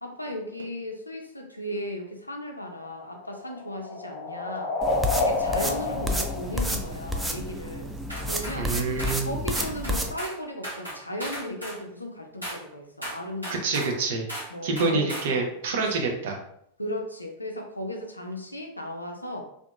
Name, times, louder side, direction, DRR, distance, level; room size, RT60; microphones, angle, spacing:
voice 1, 0.0-4.7 5.1-8.0 8.3-8.7 9.2-14.0 14.5-15.5 16.8-19.4, left 1 dB, 85° left, 2 dB, 0.4 m, -36 dB
sound 1, 2.7-7.4, left 3 dB, 35° left, 0.6 m, -30 dB
sound 2, 4.8-10.1, equal, 5° right, 0.3 m, -30 dB
sound 3, 8.1-8.6 9.0-9.2 9.5-10.4 10.6-11.8 12.4-12.6 13.0-13.9 14.3-14.5 14.8-15.3, equal, 90° right, 1.1 m, -36 dB
voice 2, 8.6-9.3 13.5-14.3 14.6-16.4, right 3 dB, 55° right, 1 dB, 0.6 m, -27 dB
2.7 x 2.4 x 2.3 m, 0.71 s
figure-of-eight pair, 90°, 0 cm